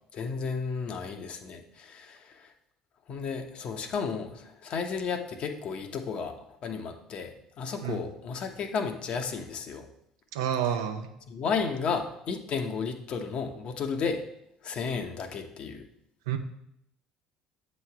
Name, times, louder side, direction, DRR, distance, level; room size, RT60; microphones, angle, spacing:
voice 1, 0.1-2.5 3.1-9.9 11.3-14.2 14.6-15.8, left 5 dB, 50° left, 5 dB, 0.9 m, -33 dB
voice 2, 10.3-11.1 16.3-16.4, right 9 dB, 80° right, 6 dB, 0.7 m, -29 dB
7.7 x 3.2 x 5.8 m, 0.76 s
hypercardioid pair, 70°, 2 cm